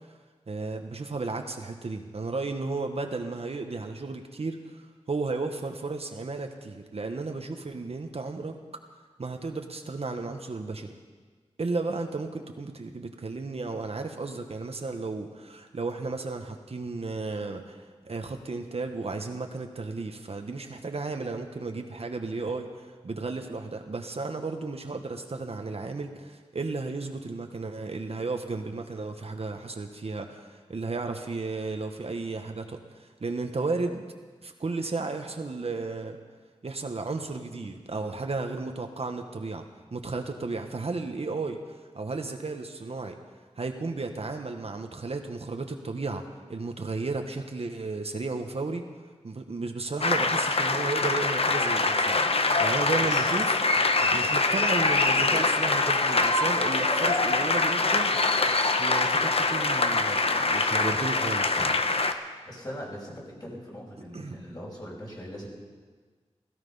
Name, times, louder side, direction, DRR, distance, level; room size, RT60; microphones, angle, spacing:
voice 1, 0.5-4.8 5.1-8.6 9.2-10.9 11.6-17.8 18.0-34.0 34.4-36.2 36.6-39.6 39.9-41.6 41.9-43.2 43.6-46.2 46.5-48.9 49.2-52.2 52.6-53.5 54.1-58.1 58.8-61.7 64.1-64.4, right 3 dB, 60° right, 5 dB, 1.2 m, -33 dB
sound 1, 50.0-62.1, left 3 dB, 55° left, 0.9 m, -24 dB
voice 2, 62.4-65.5, equal, 35° left, -3 dB, 5.4 m, -41 dB
17.0 x 15.0 x 5.5 m, 1.5 s
wide cardioid pair, 85°, 12 cm